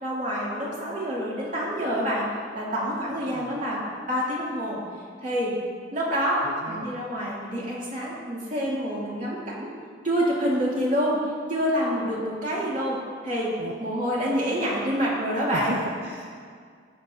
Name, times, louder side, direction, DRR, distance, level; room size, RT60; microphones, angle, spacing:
voice 1, 0.0-2.3 2.5-3.8 4.1-4.8 5.2-5.5 5.9-9.7 10.0-11.2 11.5-13.0 13.2-13.5 13.8-15.7, equal, 45° right, -6 dB, 2.7 m, -27 dB
voice 2, 6.4-7.0 13.6-13.7 15.5-16.3, right 2 dB, 65° right, 1 dB, 0.6 m, -35 dB
17.0 x 7.5 x 2.8 m, 2.1 s
head